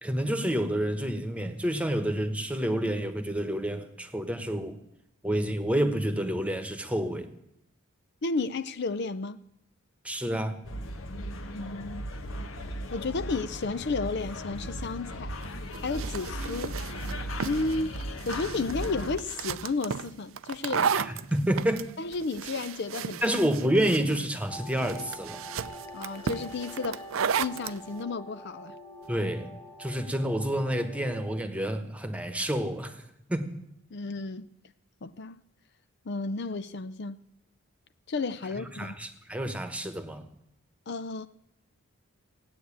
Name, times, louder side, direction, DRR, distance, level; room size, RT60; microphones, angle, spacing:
voice 1, 0.0-4.8 5.2-7.3 10.0-10.6 20.9-21.9 23.2-25.4 29.1-29.5 29.8-33.0 33.3-33.5 38.6-40.3, right 1 dB, 5° right, 1.2 m, -29 dB
voice 2, 8.2-9.4 11.5-12.1 12.9-15.3 15.8-16.8 17.4-21.0 22.0-23.2 25.9-27.1 27.4-28.7 33.9-34.5 35.0-35.4 36.0-37.2 38.1-38.9 40.9-41.3, left 3 dB, 55° left, 0.5 m, -32 dB
sound 1, 10.6-19.2, equal, 70° left, 1.4 m, -37 dB
sound 2, 15.4-27.8, right 6 dB, 70° right, 0.5 m, -34 dB
sound 3, 24.5-31.4, equal, 20° left, 2.1 m, -45 dB
17.5 x 9.5 x 8.5 m
head